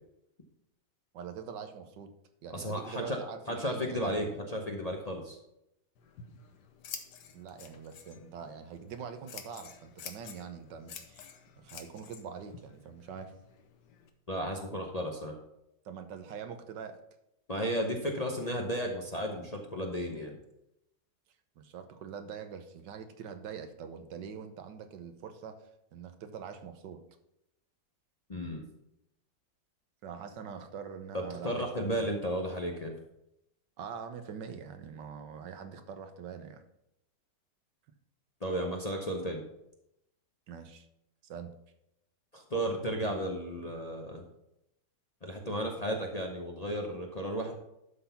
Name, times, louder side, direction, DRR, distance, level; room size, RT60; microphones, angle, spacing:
voice 1, 1.1-2.1 2.4-4.2 7.3-11.3 11.6-13.3 15.8-17.0 21.6-25.6 25.9-27.0 30.0-32.1 33.8-36.6 40.5-40.9 41.2-41.5, right 7 dB, 80° right, 8 dB, 1.5 m, -44 dB
voice 2, 2.5-3.2 3.5-5.4 14.3-15.3 17.5-20.3 28.3-28.6 31.1-32.9 38.4-39.4 42.3-44.2 45.2-47.5, equal, 30° left, 1 dB, 0.8 m, -34 dB
Scissors, 6.0-14.1, left 7 dB, 75° left, 1.5 m, -50 dB
11.5 x 4.0 x 5.7 m, 0.83 s
omnidirectional pair, 1.9 m